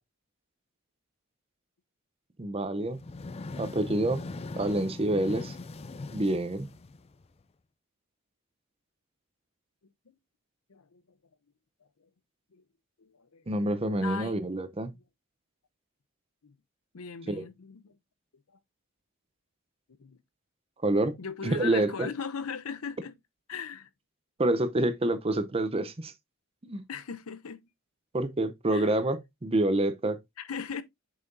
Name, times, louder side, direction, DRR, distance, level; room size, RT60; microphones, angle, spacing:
voice 1, 2.4-3.0 3.6-4.2 4.6-5.6 6.1-6.7 13.5-14.9 17.3-17.5 20.8-22.1 24.4-26.1 26.6-26.8 28.1-30.2, right 1 dB, 25° right, 0.7 m, -27 dB
sound 1, 2.9-7.4, left 3 dB, 30° left, 0.4 m, -40 dB
voice 2, 10.7-11.0 12.5-12.6 13.0-13.4 14.0-14.4 16.4-16.6 16.9-18.0 20.0-20.2 21.2-23.1 23.5-23.9 26.9-27.6 28.7-28.9 30.4-30.8, left 6 dB, 80° left, 0.7 m, -38 dB
6.7 x 5.7 x 2.6 m
head